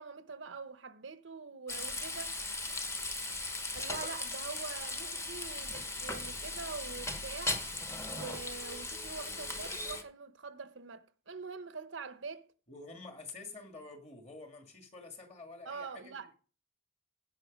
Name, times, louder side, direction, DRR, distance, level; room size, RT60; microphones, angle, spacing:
voice 1, 0.0-2.4 3.7-7.6 8.0-12.5 15.6-16.3, right 4 dB, 75° right, 0.8 m, -44 dB
Frying (food), 1.7-10.0, left 2 dB, 15° left, 1.0 m, -38 dB
voice 2, 12.7-16.3, left 3 dB, 30° left, 1.8 m, -48 dB
16.0 x 5.6 x 5.2 m
head